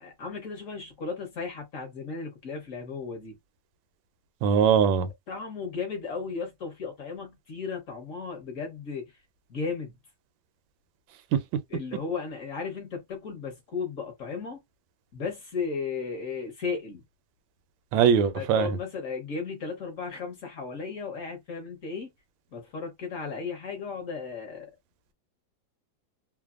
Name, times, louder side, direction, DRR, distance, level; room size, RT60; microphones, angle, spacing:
voice 1, 0.0-3.4 5.3-9.2 9.5-10.0 11.7-14.6 15.1-17.0 18.3-22.1 22.5-24.7, left 5 dB, 55° left, 1.1 m, -35 dB
voice 2, 4.4-5.1 11.3-11.4 17.9-18.7, right 7 dB, 85° right, 1.3 m, -21 dB
3.3 x 2.0 x 2.4 m
omnidirectional pair, 2.0 m